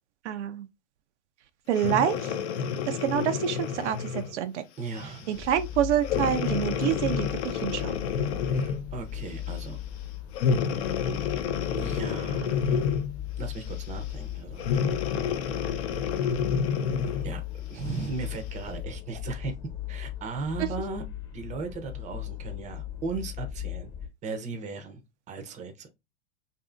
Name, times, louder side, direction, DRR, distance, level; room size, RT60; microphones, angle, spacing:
voice 1, 0.2-0.7 1.7-2.3 2.9-4.6 5.3-8.0 20.6-20.7, right 10 dB, 75° right, 0.5 m, -27 dB
Breathing, 1.7-4.4 5.0-5.2 6.0-8.9 10.3-13.2 14.6-17.3 18.0-18.1, left 7 dB, 65° left, 0.6 m, -29 dB
voice 2, 4.8-5.4 8.5-9.8 11.8-13.0 13.4-14.7 16.9-19.6 19.9-21.0 21.3-23.9 24.2-25.0 25.3-25.9, right 4 dB, 20° right, 0.6 m, -37 dB
sound 1, 5.3-24.1, left 12 dB, 35° left, 1.0 m, -38 dB
2.7 x 2.6 x 2.4 m
hypercardioid pair, 105°, 35 cm